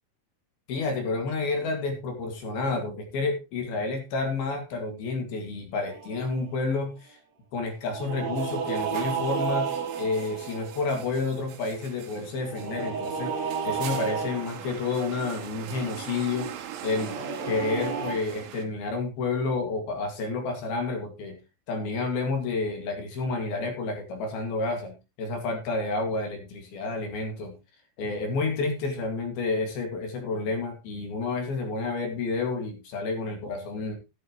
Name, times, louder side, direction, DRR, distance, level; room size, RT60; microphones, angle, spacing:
voice 1, 0.7-7.2 7.5-9.7 10.0-17.2 17.5-21.4 21.7-27.6 28.0-34.0, left 3 dB, 60° left, 4 dB, 3.6 m, -30 dB
sound 1, 5.8-6.7 7.9-11.4 12.4-14.9 16.8-18.1, right 6 dB, 45° right, 2.6 m, -32 dB
sound 2, 8.4-18.6, right 10 dB, 80° right, 3.7 m, -42 dB
13.0 x 11.0 x 3.0 m, 0.26 s
omnidirectional pair, 5.4 m